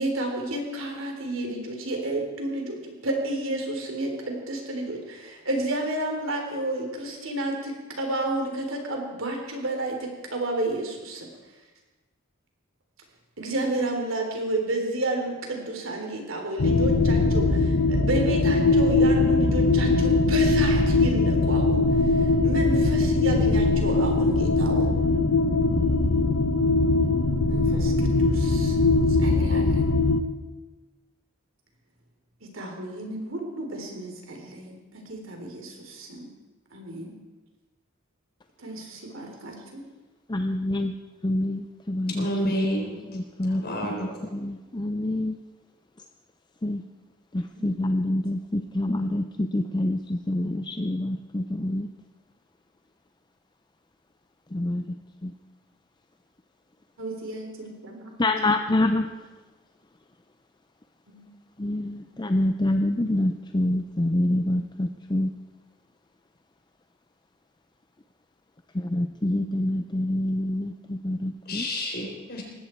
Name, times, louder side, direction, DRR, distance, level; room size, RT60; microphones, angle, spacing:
voice 1, 0.0-11.3 13.4-24.9 27.5-29.9 32.4-36.3 36.7-37.2 38.6-39.8 47.5-47.7 57.0-58.1 58.4-58.5 61.1-61.2, right 2 dB, 70° right, 2 dB, 3.6 m, -31 dB
sound 1, 16.6-30.2, left 3 dB, 75° left, 1.0 m, -21 dB
voice 2, 40.3-40.9 41.2-42.5 43.1-43.9 44.3-45.4 46.6-46.8 47.3-51.9 54.5-54.8 55.2-55.3 58.2-59.1 61.6-65.3 68.7-71.7, left 1 dB, 20° left, 7 dB, 0.6 m, -26 dB
voice 3, 42.2-42.9 43.4-44.3 71.5-72.4, equal, 50° left, 1 dB, 4.2 m, -29 dB
19.5 x 16.0 x 4.6 m, 1.2 s
head